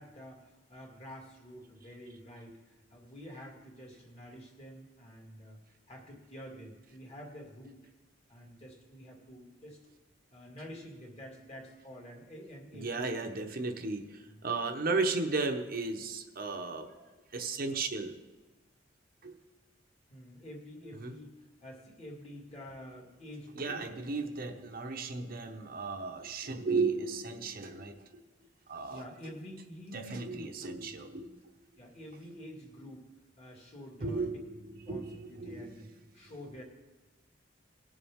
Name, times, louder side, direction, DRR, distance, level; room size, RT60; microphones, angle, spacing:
voice 1, 0.0-5.6 5.9-7.8 8.3-9.8 10.3-13.2 13.6-13.7 14.3-14.4 20.1-23.9 24.5-24.7 28.9-30.5 30.8-30.9 31.8-33.1 33.4-34.3 34.9-36.6, equal, 35° left, -1 dB, 2.3 m, -48 dB
voice 2, 12.7-18.1 19.2-19.3 21.0-21.1 23.6-28.2 28.7-29.0 29.9-31.4 34.0-35.8, right 3 dB, 50° right, 4 dB, 0.9 m, -35 dB
19.0 x 7.2 x 3.6 m, 1.2 s
head